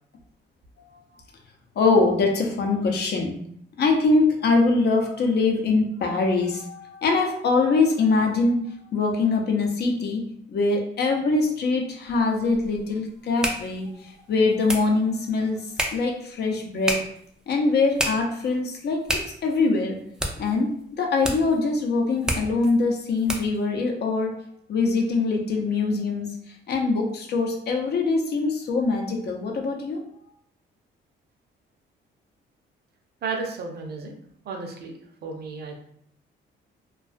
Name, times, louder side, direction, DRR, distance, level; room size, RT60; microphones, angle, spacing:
voice 1, 1.8-3.4 3.8-15.7 15.9-17.0 17.5-19.0 19.4-20.0 20.4-24.3 24.7-26.4 26.7-30.0, left 3 dB, 55° left, 2 dB, 0.6 m, -23 dB
sound 1, 12.1-23.7, equal, 5° right, 0.4 m, -33 dB
voice 2, 33.2-35.8, right 4 dB, 55° right, 2 dB, 0.6 m, -34 dB
2.3 x 2.2 x 2.4 m, 0.68 s
cardioid pair, 90°, 20 cm